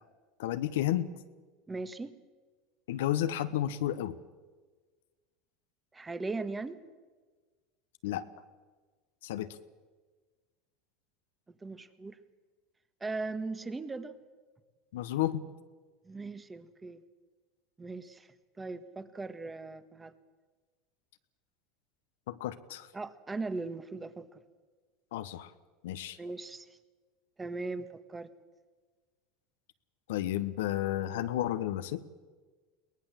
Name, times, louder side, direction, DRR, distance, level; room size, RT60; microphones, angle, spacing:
voice 1, 0.4-1.1 2.9-4.2 8.0-8.2 9.2-9.5 14.9-15.4 22.3-22.9 25.1-25.5 25.8-26.2 30.1-32.0, left 13 dB, 80° left, 11 dB, 1.1 m, -32 dB
voice 2, 1.7-2.1 5.9-6.8 11.5-12.2 13.0-14.1 16.0-17.0 17.8-18.3 18.6-20.1 22.9-24.4 26.2-26.6 27.4-28.3, right 3 dB, 15° right, 12 dB, 1.5 m, -38 dB
22.5 x 19.0 x 7.5 m, 1.4 s
hypercardioid pair, 95°, 0 cm